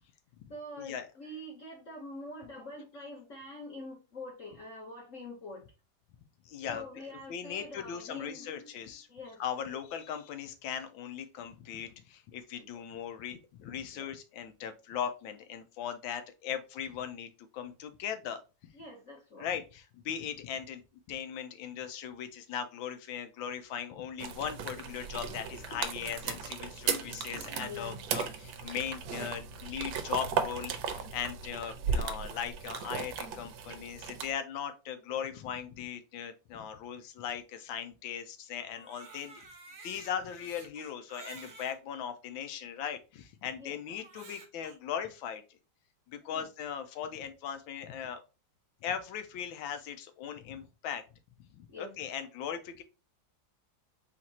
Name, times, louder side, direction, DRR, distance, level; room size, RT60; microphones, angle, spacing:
voice 1, 0.5-5.7 6.7-8.7 9.1-9.4 12.7-12.8 13.9-14.1 18.7-19.5 27.6-28.0 43.6-43.8 44.1-44.3 46.3-46.5 51.7-51.9, left 1 dB, 45° left, -3 dB, 1.4 m, -45 dB
voice 2, 6.4-6.8 7.3-9.1 9.4-17.3 17.5-18.7 19.4-20.8 21.1-39.4 39.8-45.4 46.1-48.2 48.8-51.0 51.5-52.8, left 8 dB, 85° left, 9 dB, 1.5 m, -39 dB
sound 1, 24.2-34.3, right 6 dB, 90° right, 1.4 m, -36 dB
Crying sobbing, 38.6-41.8 42.5-42.6 43.9-44.8, right 3 dB, 45° right, 1.0 m, -51 dB
4.4 x 2.5 x 4.1 m, 0.29 s
omnidirectional pair, 2.1 m